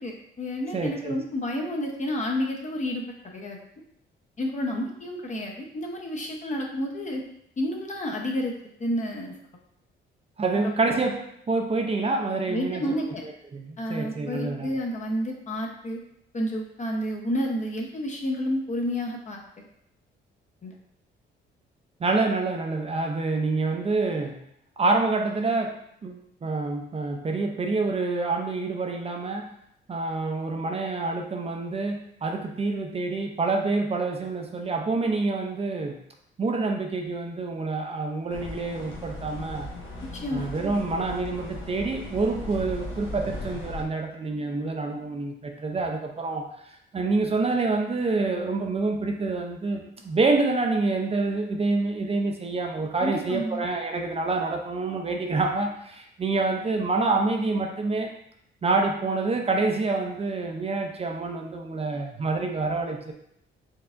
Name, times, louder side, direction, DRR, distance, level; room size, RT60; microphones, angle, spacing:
voice 1, 0.0-3.6 4.4-7.2 7.6-8.5 8.8-9.3 10.5-10.7 12.5-13.2 13.8-16.0 16.3-19.6 20.6-20.7 40.1-40.5 53.0-53.7, equal, 35° left, 1 dB, 0.8 m, -30 dB
voice 2, 0.7-1.2 10.4-12.8 13.2-14.7 22.0-24.4 24.8-29.5 29.9-36.0 36.4-39.7 40.3-46.5 46.9-58.1 58.6-63.1, right 3 dB, 30° right, 2 dB, 0.5 m, -27 dB
sound 1, 38.3-43.8, left 1 dB, 75° left, 1.0 m, -37 dB
4.5 x 3.3 x 2.5 m, 0.73 s
cardioid pair, 90°, 20 cm